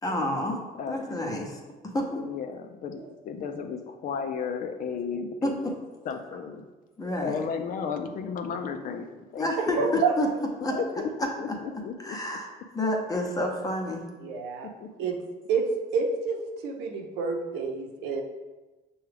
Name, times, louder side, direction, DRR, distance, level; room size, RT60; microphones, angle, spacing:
voice 1, 0.0-2.2 5.4-5.7 7.0-7.4 9.4-10.3 10.6-10.8 12.0-12.5 12.7-14.1, left 1 dB, 20° left, 1 dB, 0.8 m, -29 dB
voice 2, 0.8-1.2 2.2-5.6 6.0-6.7 7.2-10.0 10.6-11.1 11.4-12.2 14.8-14.9, left 6 dB, 55° left, 6 dB, 0.4 m, -34 dB
voice 3, 9.8-10.1 10.7-10.8 14.2-14.7 15.0-15.2 15.5-15.6 15.9-16.4 16.6-18.2, right 5 dB, 90° right, 2 dB, 0.7 m, -28 dB
5.8 x 2.3 x 3.3 m, 1.2 s
cardioid pair, 110°, 17 cm